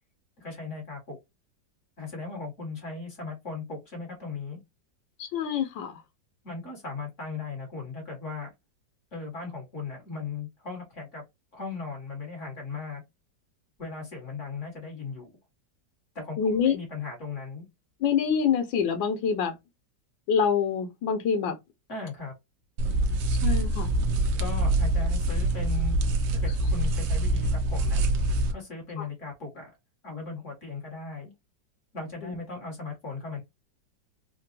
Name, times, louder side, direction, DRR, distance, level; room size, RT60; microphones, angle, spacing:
voice 1, 0.4-1.2 2.0-4.6 6.4-8.5 9.1-11.2 11.5-13.0 13.8-15.3 16.1-16.4 16.6-17.6 21.9-22.3 24.4-26.0 26.3-28.0 28.5-29.7 30.0-31.3 31.9-33.4, left 4 dB, 45° left, 1.7 m, -37 dB
voice 2, 5.2-6.0 16.4-16.8 18.0-19.5 20.3-21.6 23.4-23.9 29.0-29.1 32.2-32.3, left 7 dB, 85° left, 1.6 m, -26 dB
sound 1, 22.8-28.5, right 1 dB, 70° right, 1.2 m, -25 dB
3.9 x 2.2 x 2.6 m
omnidirectional pair, 2.0 m